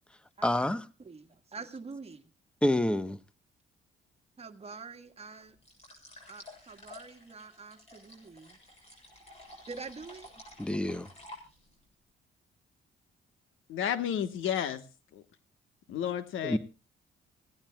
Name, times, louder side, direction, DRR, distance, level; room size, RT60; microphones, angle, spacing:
voice 1, 0.4-0.8 2.6-3.2 10.6-11.1 16.4-16.6, left 1 dB, 5° left, 0.9 m, -27 dB
voice 2, 1.0-2.3 4.4-5.6 6.3-8.6 9.7-10.3, right 4 dB, 30° right, 1.7 m, -45 dB
sound 1, 5.6-11.8, left 1 dB, 30° left, 7.5 m, -52 dB
voice 3, 13.7-14.8 15.1-15.2 15.9-16.6, left 9 dB, 85° left, 1.3 m, -31 dB
26.0 x 16.5 x 2.3 m
cardioid pair, 90°, 20 cm